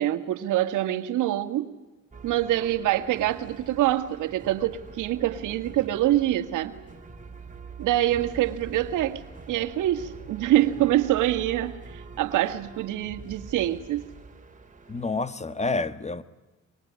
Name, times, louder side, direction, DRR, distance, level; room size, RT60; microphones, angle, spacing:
voice 1, 0.0-1.7 2.2-6.7 7.8-9.2 9.5-14.0, right 13 dB, 85° right, 1.8 m, -25 dB
sound 1, 2.1-15.3, right 4 dB, 25° right, 3.1 m, -44 dB
voice 2, 14.9-16.2, left 3 dB, 20° left, 1.5 m, -28 dB
24.5 x 22.5 x 9.5 m
cardioid pair, 90°, 30 cm